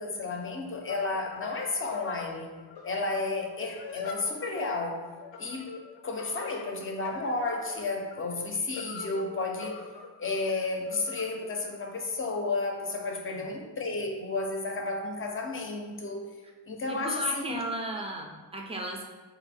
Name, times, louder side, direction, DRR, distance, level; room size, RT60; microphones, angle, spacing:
voice 1, 0.0-2.5 2.8-5.1 5.4-5.7 6.0-9.9 10.2-16.4 16.7-17.6, left 3 dB, 30° left, 2 dB, 0.6 m, -32 dB
sound 1, 0.9-12.5, left 5 dB, 80° left, 0.6 m, -44 dB
voice 2, 16.9-19.0, right 1 dB, 15° right, 1 dB, 0.5 m, -35 dB
4.2 x 2.6 x 4.1 m, 1.3 s
cardioid pair, 125°, 42 cm